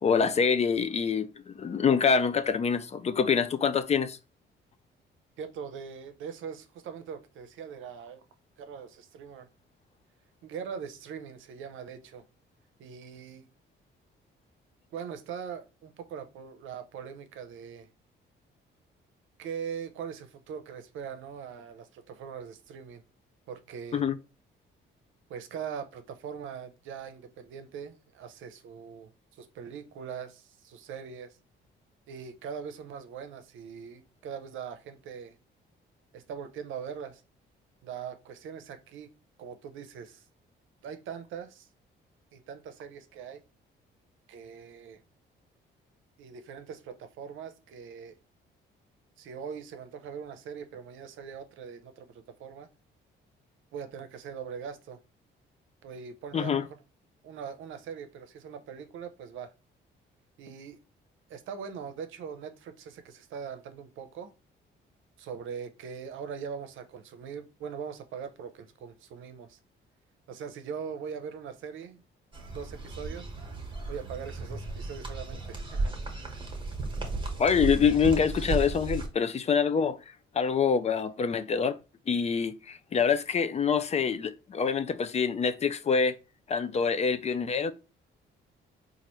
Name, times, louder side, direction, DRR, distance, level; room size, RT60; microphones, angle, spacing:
voice 1, 0.0-4.2 23.9-24.2 56.3-56.7 77.4-80.0 80.3-81.8 82.1-86.2 86.5-87.7, left 6 dB, 35° left, 0.4 m, -26 dB
voice 2, 5.4-8.2 8.6-9.5 10.4-12.2 12.8-13.5 14.9-17.9 19.4-23.0 23.5-24.0 25.3-31.4 32.1-35.3 36.1-37.2 37.8-39.1 39.4-40.2 40.8-41.7 42.3-43.4 44.3-45.0 46.2-48.2 49.2-52.7 53.7-55.0 55.8-56.8 57.2-59.5 60.4-60.8 61.3-64.3 65.2-69.6 70.3-72.0 72.5-73.3 73.9-75.9, right 7 dB, 80° right, 0.6 m, -41 dB
sound 1, 72.3-79.1, right 3 dB, 25° right, 1.1 m, -34 dB
4.1 x 2.5 x 3.0 m
cardioid pair, 90°, 20 cm